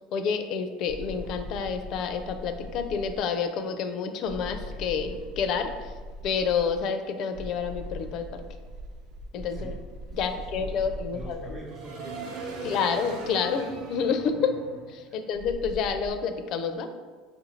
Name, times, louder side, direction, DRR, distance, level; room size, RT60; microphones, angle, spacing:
voice 1, 0.1-5.7 6.2-8.4 9.3-9.7 10.1-11.5 12.6-14.5 14.9-16.9, left 6 dB, 55° left, 8 dB, 0.4 m, -29 dB
sound 1, 0.9-3.2 4.3-6.8 7.3-16.1, right 1 dB, 75° right, 0.7 m, -40 dB
voice 2, 10.1-12.9 15.1-15.2, right 2 dB, 40° right, -6 dB, 0.9 m, -45 dB
5.0 x 2.5 x 3.1 m, 1.4 s
supercardioid pair, 105°, 0 cm